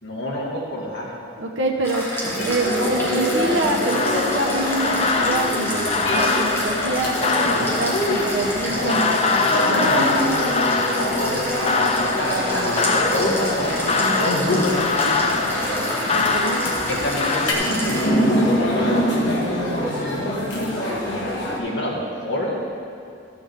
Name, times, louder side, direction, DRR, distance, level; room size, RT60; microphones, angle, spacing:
voice 1, 0.0-1.1 7.6-7.9 10.9-12.0 12.5-15.9 16.9-19.1 20.3-21.0 21.5-22.6, left 1 dB, 70° left, -4 dB, 2.0 m, -28 dB
voice 2, 1.4-2.0 2.4-7.1 7.6-10.2 16.0-16.6, right 2 dB, 90° right, 0 dB, 1.0 m, -26 dB
sound 1, 1.8-18.1, equal, 15° left, 1.7 m, -31 dB
sound 2, 2.2-21.6, equal, 85° left, 1.6 m, -25 dB
sound 3, 3.7-17.5, left 4 dB, 35° left, 0.5 m, -24 dB
13.0 x 7.0 x 3.6 m, 2.5 s
head